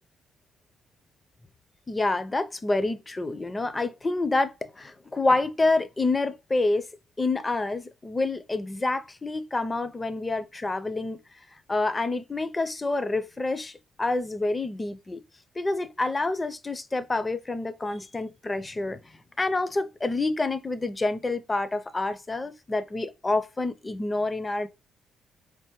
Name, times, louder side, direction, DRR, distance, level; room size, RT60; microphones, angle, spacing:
voice 1, 1.9-6.9 7.2-11.2 11.7-15.2 15.6-19.0 19.4-24.7, left 2 dB, 20° left, 0.4 m, -28 dB
4.1 x 3.3 x 2.9 m
cardioid pair, 90°, 0 cm